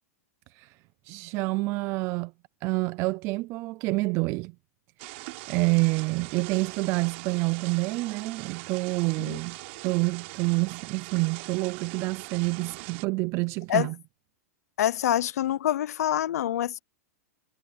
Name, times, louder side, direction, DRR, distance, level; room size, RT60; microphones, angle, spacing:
voice 1, 1.0-2.3 2.6-4.5 5.0-5.2 5.5-13.9, right 25 dB, 35° right, 0.5 m, -28 dB
sound 1, 5.0-13.1, right 24 dB, 50° right, 3.8 m, -42 dB
voice 2, 14.8-16.8, left 12 dB, 80° left, 0.7 m, -26 dB
supercardioid pair, 155°, 8 cm